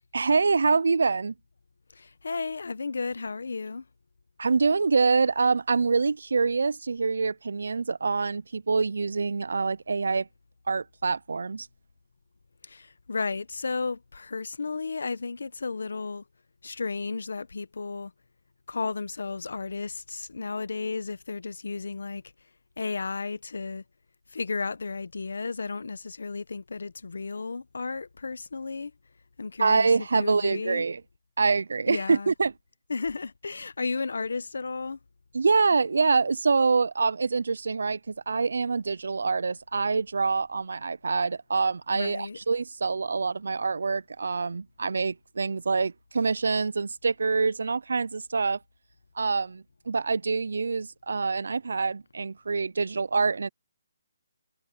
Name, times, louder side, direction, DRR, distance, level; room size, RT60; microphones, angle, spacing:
voice 1, 0.1-1.3 4.4-10.3 10.7-11.7 29.6-31.0 31.4-32.5 35.3-48.6 49.2-53.5, right 4 dB, 65° right, 0.3 m, -25 dB
voice 2, 2.0-3.8 12.6-16.2 16.6-18.1 18.7-22.2 22.8-23.8 24.3-28.9 29.4-30.9 31.9-32.3 32.9-35.0 41.9-42.4, left 4 dB, 70° left, 0.9 m, -33 dB
hypercardioid pair, 180°, 0 cm